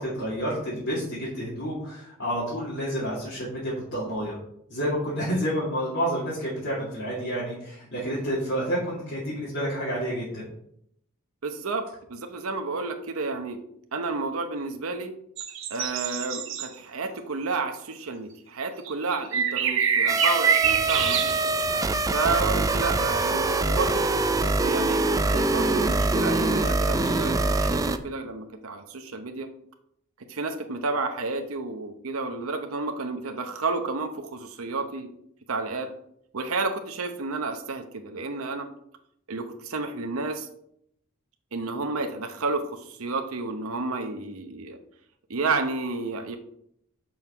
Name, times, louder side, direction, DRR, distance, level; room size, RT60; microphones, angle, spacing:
voice 1, 0.0-4.4 4.7-10.4 27.0-27.6, equal, 60° left, -8 dB, 2.6 m, -29 dB
voice 2, 11.4-11.8 12.1-13.6 13.9-15.1 15.7-21.3 22.1-24.0 24.6-29.5 30.3-35.1 35.5-35.9 36.3-38.7 39.3-40.5 41.5-44.8 45.3-46.4, right 3 dB, 90° right, 6 dB, 0.8 m, -31 dB
sound 1, 15.4-16.7 18.9-21.6, right 7 dB, 65° right, 1.0 m, -25 dB
sound 2, 20.1-28.0, right 2 dB, 15° right, 0.4 m, -24 dB
sound 3, 20.6-22.3 22.8-28.0, right 1 dB, 40° right, 1.6 m, -40 dB
6.2 x 5.6 x 5.9 m, 0.72 s
head